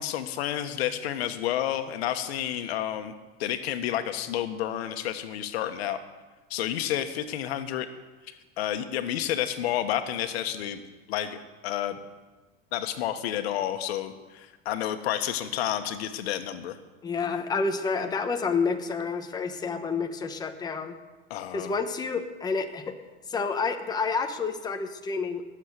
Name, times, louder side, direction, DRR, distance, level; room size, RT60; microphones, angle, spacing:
voice 1, 0.0-3.1 3.4-6.0 6.5-7.9 8.3-10.8 11.1-11.4 11.6-12.0 12.7-16.8 21.3-21.7, left 11 dB, 80° left, 8 dB, 1.4 m, -30 dB
voice 2, 17.0-21.0 21.5-22.9 23.3-25.4, left 4 dB, 15° left, 5 dB, 1.1 m, -29 dB
18.5 x 7.4 x 8.2 m, 1.2 s
supercardioid pair, 140°, 31 cm